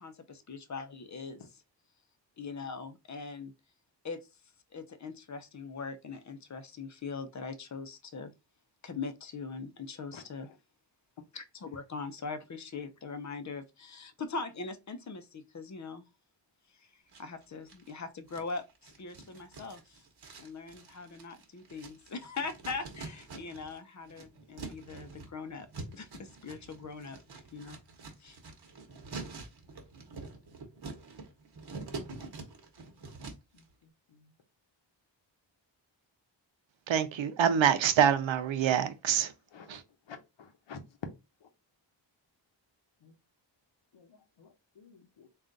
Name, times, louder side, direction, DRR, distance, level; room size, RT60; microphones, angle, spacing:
voice 1, 0.0-1.4 2.4-3.5 4.0-4.2 4.7-8.3 8.8-10.5 11.3-16.1 16.7-16.9 17.2-20.0 20.4-25.7 25.9-27.2 27.5-27.8 28.2-28.4, left 4 dB, 40° left, 0.6 m, -41 dB
sound 1, 17.1-17.9 18.3-23.8 24.0-33.6, right 3 dB, 60° right, 1.0 m, -46 dB
voice 2, 36.9-39.3 39.7-39.8, right 8 dB, 85° right, 0.7 m, -26 dB
voice 3, 40.1-40.8 41.4-41.5 43.0-43.1 43.9-45.3, left 5 dB, 75° left, 0.9 m, -51 dB
3.7 x 2.4 x 3.8 m
wide cardioid pair, 140°, 45 cm